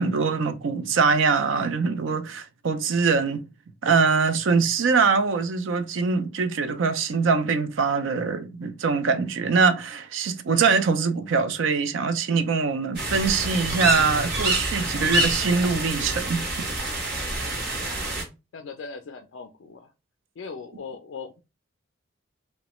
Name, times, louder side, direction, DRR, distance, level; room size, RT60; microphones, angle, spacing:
voice 1, 0.0-3.4 3.8-16.7, right 5 dB, 75° right, 0.4 m, -23 dB
sound 1, 13.0-18.2, right 1 dB, 50° right, 0.8 m, -27 dB
voice 2, 18.5-19.9 20.4-21.4, left 5 dB, 65° left, 0.3 m, -39 dB
3.0 x 2.1 x 2.9 m
head